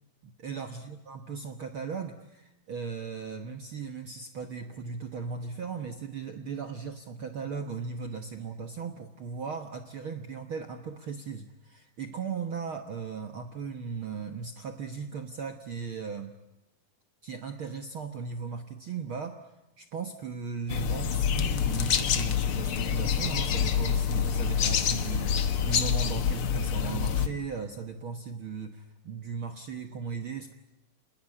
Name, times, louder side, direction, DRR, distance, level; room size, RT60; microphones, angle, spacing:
voice 1, 0.2-16.3 17.2-19.4 19.8-30.5, right 5 dB, 75° right, 6 dB, 1.2 m, -37 dB
sound 1, 20.7-27.3, left 7 dB, 70° left, 1.2 m, -27 dB
27.0 x 20.0 x 9.8 m, 0.96 s
omnidirectional pair, 4.3 m